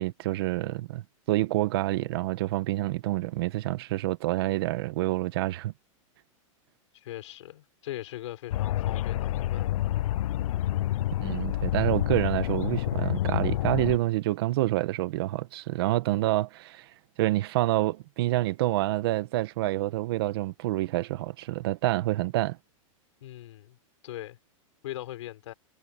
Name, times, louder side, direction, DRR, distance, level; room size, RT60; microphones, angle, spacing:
voice 1, 0.0-5.7 11.2-16.9 17.2-22.6, right 16 dB, 45° right, 1.5 m, -27 dB
voice 2, 6.9-9.9 23.2-23.8 24.0-24.4 24.8-25.5, left 14 dB, 60° left, 5.8 m, -40 dB
sound 1, 8.5-14.0, left 13 dB, 85° left, 0.4 m, -28 dB
supercardioid pair, 170°, 17 cm